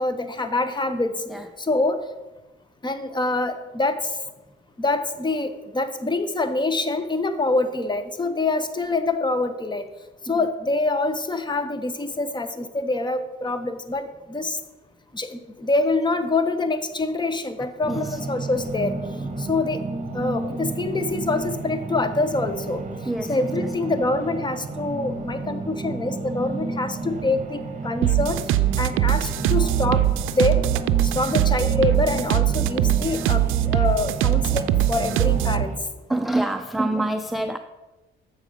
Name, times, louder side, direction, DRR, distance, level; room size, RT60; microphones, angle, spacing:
voice 1, 0.0-1.1 1.6-2.0 2.8-4.1 4.8-9.8 10.2-14.6 15.1-18.9 19.4-19.8 20.1-22.8 23.3-28.4 28.8-30.0 30.3-30.6 31.1-35.8, left 2 dB, 20° left, 10 dB, 0.9 m, -25 dB
voice 2, 17.8-18.2 19.2-19.4 23.1-23.5 31.3-31.4 36.1-37.6, right 1 dB, ahead, 7 dB, 0.4 m, -27 dB
sound 1, 17.8-35.8, right 3 dB, 40° right, 1.3 m, -32 dB
sound 2, 28.0-35.6, right 13 dB, 90° right, 0.4 m, -21 dB
7.5 x 6.3 x 5.2 m, 1.1 s
cardioid pair, 90°, 20 cm